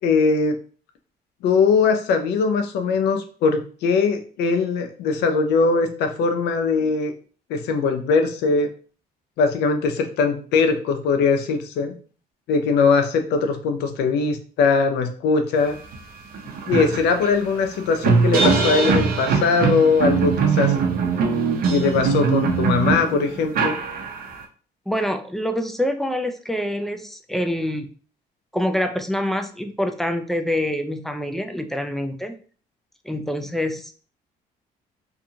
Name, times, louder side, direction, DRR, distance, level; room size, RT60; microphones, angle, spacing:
voice 1, 0.0-0.6 1.4-7.1 7.5-8.7 9.4-11.9 12.5-15.8 16.7-20.8 21.7-23.8, left 4 dB, 80° left, 6 dB, 0.5 m, -20 dB
sound 1, 15.9-16.0 16.3-24.4, right 5 dB, 60° right, 0.6 m, -21 dB
voice 2, 24.9-27.9 28.5-32.4 33.0-33.9, equal, ahead, 6 dB, 0.3 m, -26 dB
2.5 x 2.4 x 2.7 m, 0.40 s
cardioid pair, 110°, 17 cm